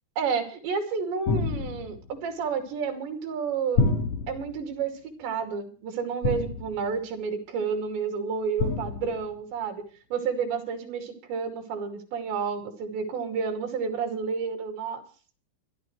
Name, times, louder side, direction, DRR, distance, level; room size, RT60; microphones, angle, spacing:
voice 1, 0.2-3.8 4.3-4.9 5.2-9.8 10.1-15.0, right 5 dB, 70° right, 5 dB, 4.7 m, -30 dB
sound 1, 1.3-2.1 3.8-4.6 6.2-6.9 8.6-9.2, left 3 dB, 60° left, 1.5 m, -28 dB
26.5 x 11.5 x 3.2 m, 0.41 s
omnidirectional pair, 5.3 m